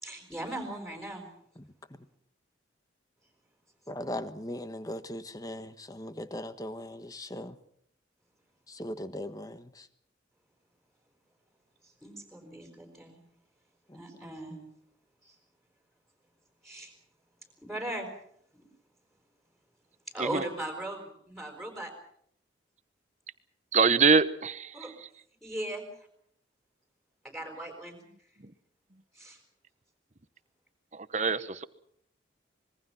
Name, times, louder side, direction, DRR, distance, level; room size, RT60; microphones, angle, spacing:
voice 1, 0.0-1.3 11.8-13.2 13.9-14.7 15.2-15.3 16.6-16.9 17.6-18.1 20.1-21.9 24.7-24.9 25.4-25.8 27.2-28.0 29.1-29.4, right 1 dB, ahead, 4.8 m, -38 dB
voice 2, 3.9-7.6 8.7-9.9 13.9-14.3, left 1 dB, 20° left, 1.3 m, -39 dB
voice 3, 23.7-24.7 31.1-31.6, right 5 dB, 35° right, 1.1 m, -24 dB
25.5 x 21.5 x 5.9 m
head